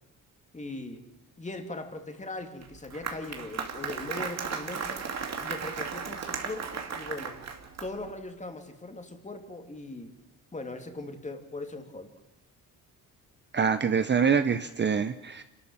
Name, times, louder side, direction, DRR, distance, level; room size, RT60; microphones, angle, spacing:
voice 1, 0.5-1.0 1.4-5.1 5.4-7.4 7.8-10.1 10.5-12.1, left 2 dB, 20° left, 5 dB, 2.9 m, -39 dB
Applause, 2.6-8.1, right 6 dB, 45° right, 2.6 m, -35 dB
voice 2, 13.5-15.4, right 6 dB, 30° right, 10 dB, 0.8 m, -25 dB
27.0 x 13.0 x 8.8 m, 0.96 s
cardioid pair, 110°, 36 cm